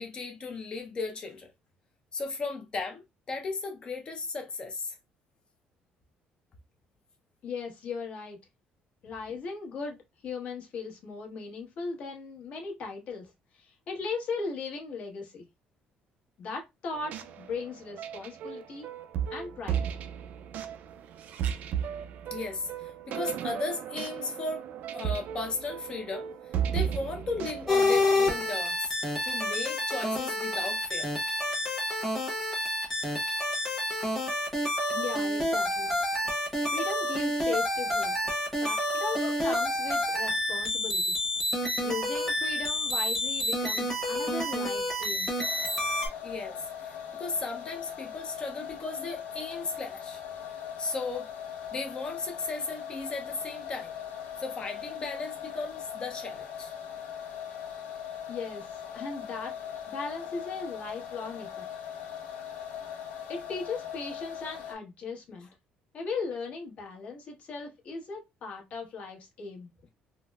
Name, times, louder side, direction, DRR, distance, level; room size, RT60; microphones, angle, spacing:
voice 1, 0.0-1.5 2.1-4.9 22.3-24.7 24.9-26.3 26.7-29.0 29.2-31.1 46.2-50.2 50.8-51.3 51.7-53.9 54.4-56.7, left 3 dB, 30° left, 0.5 m, -36 dB
voice 2, 7.4-8.4 9.0-10.0 10.2-13.3 13.5-15.5 16.4-18.9 19.3-19.8 34.9-35.9 36.7-38.1 38.6-41.2 41.8-45.3 58.3-59.5 59.9-61.6 63.3-65.5 65.9-69.7, left 4 dB, 45° left, 1.0 m, -38 dB
sound 1, 16.9-28.5, right 9 dB, 55° right, 0.3 m, -35 dB
sound 2, 27.7-46.1, left 1 dB, 5° left, 0.9 m, -29 dB
sound 3, 45.4-64.7, left 8 dB, 85° left, 1.1 m, -40 dB
3.8 x 2.0 x 2.2 m
cardioid pair, 160°, 3 cm